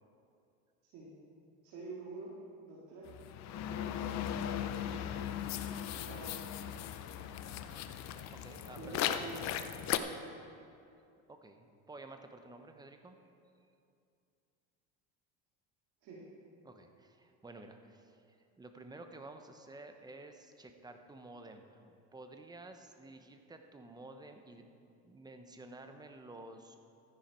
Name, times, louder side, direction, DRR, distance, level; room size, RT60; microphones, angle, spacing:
voice 1, 1.6-2.3 2.6-3.1 3.5-3.9 4.8-5.2 6.1-6.9 8.8-9.5 9.9-10.2 16.0-16.2, right 2 dB, 65° right, -6 dB, 2.7 m, -47 dB
sound 1, 3.1-10.0, left 10 dB, 55° left, 0.7 m, -38 dB
voice 2, 8.3-9.1 11.3-13.2 16.6-26.8, right 2 dB, 10° right, 6 dB, 0.9 m, -52 dB
13.5 x 10.5 x 4.4 m, 2.5 s
supercardioid pair, 115°, 34 cm